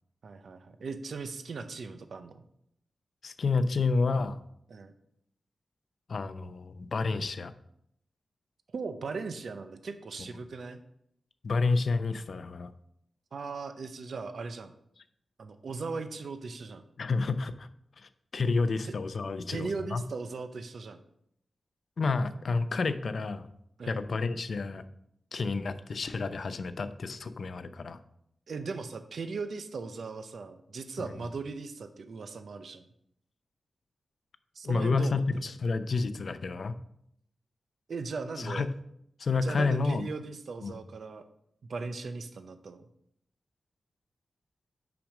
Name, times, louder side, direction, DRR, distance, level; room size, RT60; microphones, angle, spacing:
voice 1, 0.2-2.4 4.7-4.9 8.7-10.8 13.3-14.7 15.4-16.8 18.8-18.9 19.5-21.0 23.8-24.0 28.5-32.8 34.5-35.5 37.9-38.7 39.4-41.2 41.7-42.8, right 4 dB, 70° right, 9 dB, 0.6 m, -38 dB
voice 2, 3.2-4.4 6.1-7.5 11.4-12.7 17.0-17.7 18.0-20.0 22.0-23.5 23.9-24.8 25.3-28.0 31.0-31.1 34.6-36.8 38.4-38.7 39.2-40.1 40.6-40.8, left 4 dB, 60° left, 11 dB, 0.5 m, -30 dB
5.9 x 5.1 x 6.3 m, 0.74 s
wide cardioid pair, 120°, 0 cm